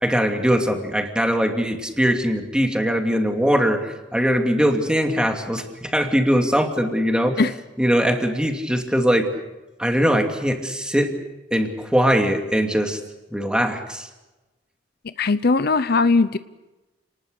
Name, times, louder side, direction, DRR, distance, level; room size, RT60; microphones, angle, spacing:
voice 1, 0.0-7.4 7.8-9.3 9.8-11.1 11.5-13.0 13.3-14.1, equal, 5° right, 4 dB, 2.6 m, -21 dB
voice 2, 15.0-16.4, left 3 dB, 60° left, 13 dB, 0.7 m, -19 dB
29.0 x 20.0 x 6.6 m, 1.1 s
head